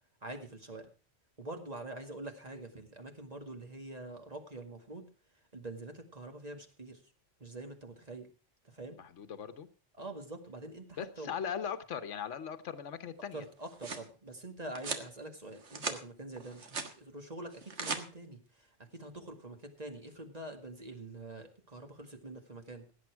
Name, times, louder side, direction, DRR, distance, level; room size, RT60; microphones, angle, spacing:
voice 1, 0.2-0.9 1.4-5.1 5.5-7.0 7.4-8.3 8.6-9.0 10.0-11.3 13.3-22.9, right 2 dB, 30° right, 5 dB, 2.1 m, -45 dB
voice 2, 9.0-9.7 11.0-13.4, left 7 dB, 75° left, 10 dB, 1.3 m, -39 dB
sound 1, 13.4-14.1 14.7-15.1 15.5-16.0 16.4-16.9 17.5-18.0, right 4 dB, 65° right, 1.8 m, -38 dB
17.0 x 9.1 x 4.6 m, 0.35 s
omnidirectional pair, 1.3 m